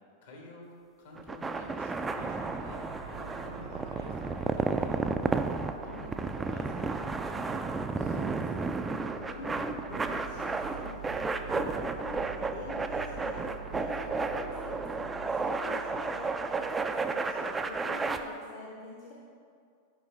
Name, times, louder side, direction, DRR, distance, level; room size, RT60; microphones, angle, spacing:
voice 1, 0.2-0.7 1.0-5.4 5.8-7.7, left 1 dB, 60° left, 0 dB, 1.2 m, -49 dB
sound 1, 1.2-18.2, right 4 dB, 15° right, 0.3 m, -32 dB
sound 2, 1.8-18.0, right 5 dB, 75° right, 0.6 m, -46 dB
voice 2, 8.0-8.8 9.1-11.2 11.5-13.4 13.7-16.3 16.6-19.1, left 3 dB, 45° left, -3 dB, 0.8 m, -44 dB
8.0 x 5.1 x 3.2 m, 2.3 s
figure-of-eight pair, 90°, 0 cm